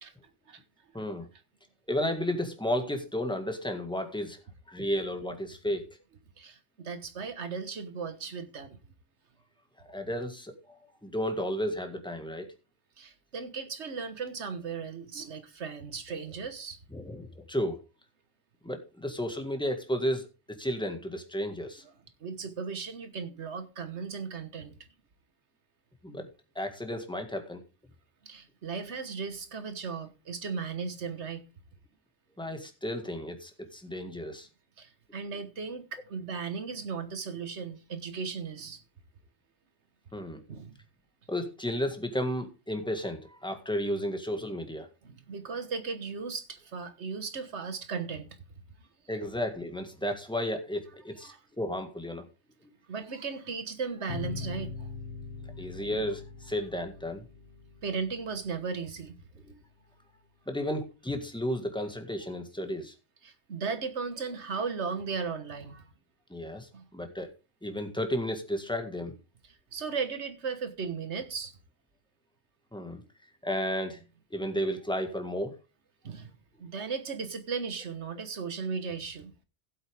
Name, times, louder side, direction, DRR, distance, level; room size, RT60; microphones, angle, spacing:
voice 1, 0.9-1.3 1.9-4.4 4.7-6.0 9.8-10.7 11.0-12.5 16.9-17.8 18.6-21.8 26.0-26.3 26.6-27.6 32.4-34.5 40.1-40.4 41.3-44.9 49.1-52.3 55.6-57.3 60.5-62.9 66.3-67.3 67.6-69.1 72.7-73.0 73.4-74.0 74.3-75.6, equal, 5° left, 1.8 m, -33 dB
voice 2, 6.4-8.8 13.0-16.8 22.2-24.7 28.2-31.4 34.8-38.8 40.5-40.7 45.0-48.4 51.2-51.4 52.9-54.9 57.8-59.1 63.2-65.8 66.7-66.8 69.7-71.5 76.0-76.3 76.6-79.3, right 5 dB, 70° right, 1.6 m, -36 dB
sound 1, 54.1-59.2, left 4 dB, 85° left, 2.4 m, -42 dB
16.0 x 8.0 x 3.6 m
omnidirectional pair, 1.2 m